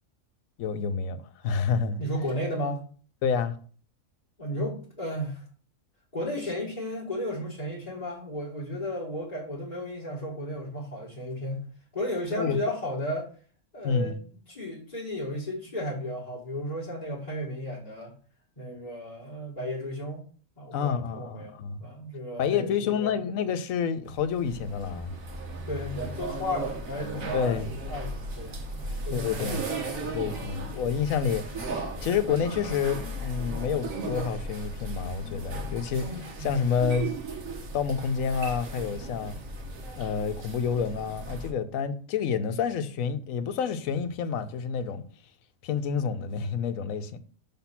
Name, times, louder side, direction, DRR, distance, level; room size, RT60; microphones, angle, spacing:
voice 1, 0.6-1.2 1.4-2.0 3.2-3.6 12.3-12.6 13.8-14.2 20.7-21.8 22.4-25.1 27.3-27.7 29.1-29.6 30.0-31.4 31.7-37.1 37.7-39.4 40.0-45.0 45.6-47.2, left 6 dB, 85° left, 1.1 m, -28 dB
voice 2, 2.0-2.8 4.4-5.4 6.1-11.6 11.9-13.3 13.7-14.2 14.5-18.1 18.6-20.2 20.6-23.2 25.7-27.6 27.9-29.7 30.2-30.4, equal, 30° left, 1.5 m, -34 dB
sound 1, 24.1-41.5, right 2 dB, 80° right, 1.5 m, -36 dB
6.0 x 3.6 x 5.7 m
omnidirectional pair, 1.4 m